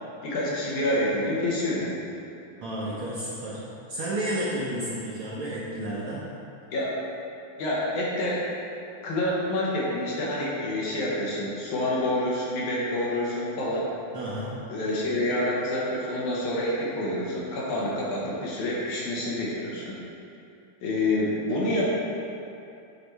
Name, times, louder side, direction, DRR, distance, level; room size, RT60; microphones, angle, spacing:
voice 1, 0.2-1.9 6.7-6.9 7.6-8.5 9.0-13.9 14.7-20.0 20.8-21.9, left 1 dB, 75° left, -5 dB, 2.7 m, -27 dB
voice 2, 2.6-3.6 3.9-6.2 14.1-14.5, right 1 dB, 65° right, -8 dB, 1.3 m, -31 dB
8.7 x 4.0 x 4.6 m, 2.7 s
omnidirectional pair, 3.5 m